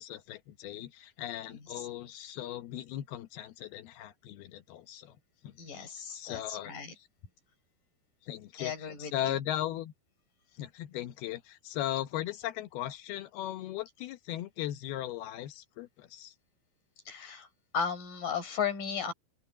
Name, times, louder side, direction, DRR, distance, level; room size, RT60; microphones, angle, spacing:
voice 1, 0.0-5.2 5.4-5.9 6.1-6.7 8.2-9.9 10.6-16.3, left 12 dB, 70° left, 2.6 m, -38 dB
voice 2, 1.5-1.9 5.6-6.9 8.6-9.4 17.1-17.5 17.7-19.1, left 6 dB, 50° left, 6.2 m, -35 dB
open air
omnidirectional pair, 5.3 m